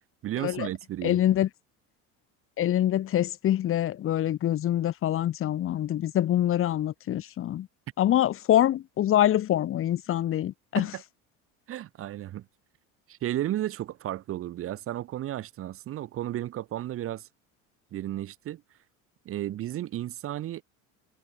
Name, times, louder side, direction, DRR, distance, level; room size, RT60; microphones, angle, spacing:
voice 1, 0.2-1.2 10.8-11.0 11.7-12.5 13.1-17.3 17.9-18.6 19.3-20.6, right 13 dB, 40° right, 2.4 m, -33 dB
voice 2, 1.0-1.5 2.6-7.7 8.0-10.9, left 12 dB, 40° left, 4.5 m, -25 dB
cardioid pair, 145°, 32 cm